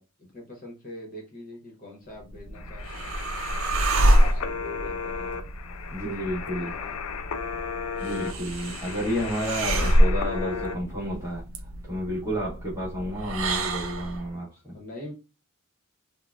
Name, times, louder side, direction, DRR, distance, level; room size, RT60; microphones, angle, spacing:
voice 1, 0.0-3.1 3.9-5.5 6.5-7.0 8.6-8.8 14.7-15.1, left 1 dB, 35° left, 1.0 m, -43 dB
sound 1, 2.2-14.3, right 1 dB, 65° right, 0.5 m, -27 dB
sound 2, 2.5-10.8, left 6 dB, 80° left, 0.4 m, -35 dB
voice 2, 5.9-6.8 8.0-11.4 11.8-14.8, equal, 15° right, 1.1 m, -31 dB
3.7 x 2.1 x 2.4 m
head